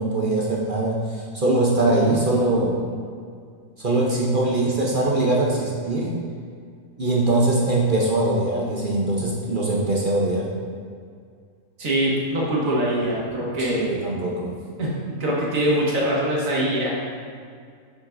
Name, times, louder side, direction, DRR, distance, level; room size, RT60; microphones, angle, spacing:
voice 1, 0.0-2.8 3.8-6.2 7.0-10.5 13.6-14.6, right 2 dB, 45° right, -3 dB, 0.8 m, -22 dB
voice 2, 11.8-13.9 14.8-17.0, right 1 dB, 70° right, -5 dB, 1.9 m, -23 dB
7.6 x 7.0 x 2.6 m, 2.2 s
omnidirectional pair, 1.5 m